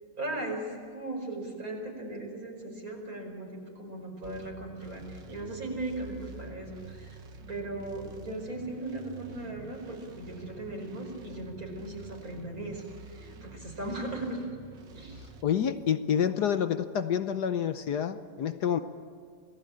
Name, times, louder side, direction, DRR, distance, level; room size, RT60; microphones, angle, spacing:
voice 1, 0.2-0.7 0.9-7.2 7.5-14.5 14.9-15.2, right 2 dB, 45° right, 1 dB, 5.4 m, -38 dB
sound 1, 4.2-15.4, right 3 dB, 70° right, 2.1 m, -48 dB
voice 2, 15.4-18.8, left 8 dB, 65° left, 10 dB, 1.3 m, -28 dB
27.5 x 18.5 x 8.8 m, 2.2 s
omnidirectional pair, 2.1 m